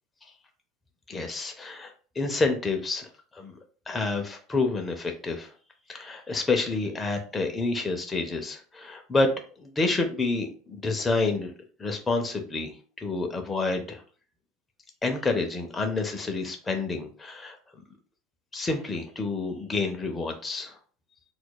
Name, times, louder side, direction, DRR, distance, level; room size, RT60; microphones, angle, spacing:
voice 1, 1.1-3.6 3.9-5.5 5.9-9.3 9.6-11.5 11.8-14.0 15.0-17.6 18.5-20.8, left 3 dB, 15° left, 3 dB, 0.6 m, -28 dB
4.3 x 2.4 x 2.2 m, 0.41 s
supercardioid pair, 100°, 0 cm